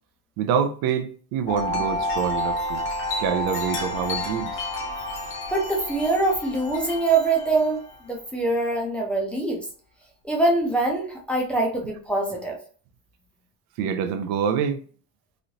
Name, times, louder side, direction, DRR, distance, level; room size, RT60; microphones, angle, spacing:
voice 1, 0.4-2.8 3.2-4.6 13.8-14.8, right 7 dB, 70° right, 0.5 m, -26 dB
Wind chime, 1.5-8.0, left 1 dB, 30° left, 0.8 m, -30 dB
voice 2, 5.5-9.7 10.2-12.6, right 2 dB, 5° left, 0.5 m, -24 dB
3.1 x 2.6 x 2.8 m
cardioid pair, 155°, 37 cm